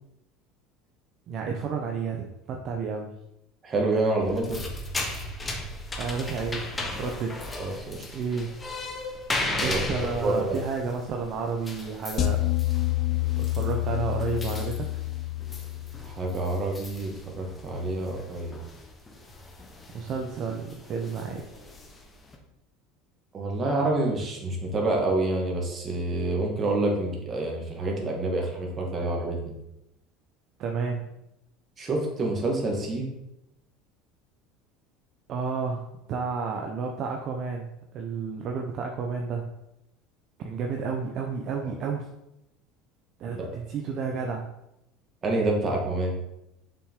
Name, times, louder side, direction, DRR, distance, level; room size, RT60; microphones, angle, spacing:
voice 1, 1.3-3.1 6.0-7.6 8.1-8.5 9.6-12.5 13.3-14.9 19.9-21.6 30.6-31.1 35.3-39.4 40.4-42.1 43.2-44.5, right 5 dB, 50° right, 2 dB, 0.8 m, -31 dB
voice 2, 3.6-4.6 7.6-8.1 9.6-9.8 10.2-10.6 16.0-18.6 23.3-29.4 31.8-33.1 43.3-43.5 45.2-46.1, right 2 dB, 30° right, 0 dB, 2.1 m, -27 dB
sound 1, 4.2-22.3, left 2 dB, 15° left, 1.2 m, -37 dB
sound 2, 12.2-16.5, left 16 dB, 40° left, 0.6 m, -28 dB
6.7 x 5.9 x 3.8 m, 0.85 s
supercardioid pair, 125°, 0 cm